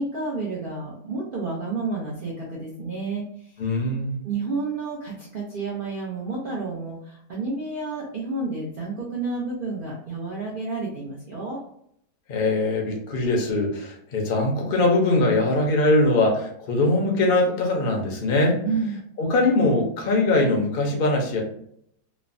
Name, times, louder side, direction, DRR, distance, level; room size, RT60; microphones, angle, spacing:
voice 1, 0.0-3.5 4.2-11.6 18.6-19.0, right 3 dB, 80° right, -5 dB, 0.4 m, -30 dB
voice 2, 3.6-4.2 12.3-18.6 19.2-21.4, left 2 dB, 60° left, 1 dB, 0.6 m, -22 dB
3.1 x 2.0 x 2.5 m, 0.69 s
omnidirectional pair, 1.7 m